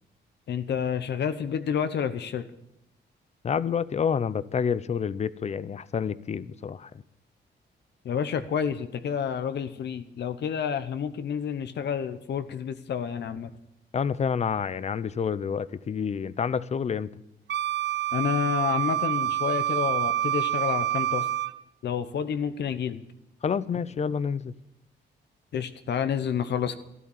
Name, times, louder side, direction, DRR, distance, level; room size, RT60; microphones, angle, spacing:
voice 1, 0.5-2.5 8.0-13.5 18.1-21.3 21.8-23.0 25.5-26.8, left 7 dB, 65° left, 10 dB, 1.0 m, -29 dB
voice 2, 3.4-6.9 13.9-17.1 23.4-24.5, left 6 dB, 35° left, 18 dB, 0.6 m, -28 dB
Wind instrument woodwind instrument, 17.5-21.6, right 11 dB, 70° right, 0.7 m, -27 dB
13.0 x 12.5 x 7.3 m, 0.83 s
cardioid pair, 125°, 19 cm